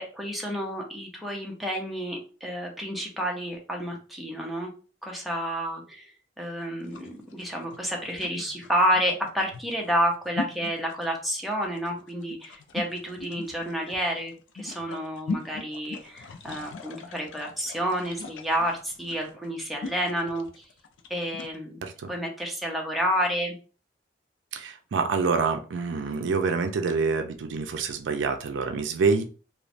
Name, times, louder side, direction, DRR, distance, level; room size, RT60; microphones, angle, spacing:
voice 1, 0.0-4.7 5.0-20.6 21.1-21.8 22.1-23.6, equal, ahead, 0 dB, 0.6 m, -30 dB
sound 1, 6.8-21.6, left 3 dB, 80° left, 0.4 m, -39 dB
voice 2, 24.5-29.2, right 4 dB, 75° right, 7 dB, 0.4 m, -26 dB
3.0 x 2.0 x 2.5 m, 0.37 s
head